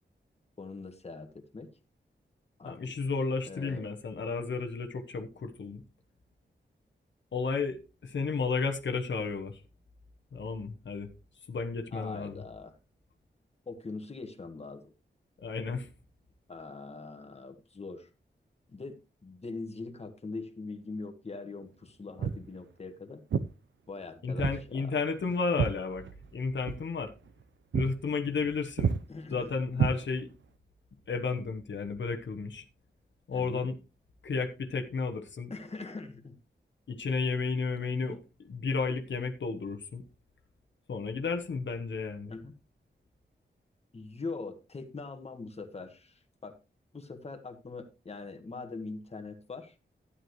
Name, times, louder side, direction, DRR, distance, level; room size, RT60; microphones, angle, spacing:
voice 1, 0.6-1.7 2.6-2.9 3.5-3.9 11.9-12.7 13.6-14.9 16.5-18.1 18.7-23.2 23.9-25.0 29.1-29.5 33.3-33.7 35.5-36.4 38.0-38.2 42.3-42.5 43.9-46.6 46.9-49.7, left 3 dB, 35° left, 1.5 m, -42 dB
voice 2, 2.6-5.8 7.3-9.6 10.3-11.1 11.5-12.4 15.4-15.9 24.2-26.1 26.3-27.1 27.7-29.0 29.3-30.3 31.1-32.7 33.3-33.7 34.2-35.5 36.9-38.2 38.5-40.0 40.9-42.3, left 4 dB, 80° left, 1.1 m, -32 dB
Walk footsteps, 22.2-22.5 23.3-23.5 24.4-24.6 24.9-26.4 26.6-26.8 27.3-27.4 27.7-27.9 28.2-28.5 28.8-29.0 29.7-30.4, right 6 dB, 85° right, 0.7 m, -30 dB
12.5 x 9.9 x 3.1 m
wide cardioid pair, 125°, 19 cm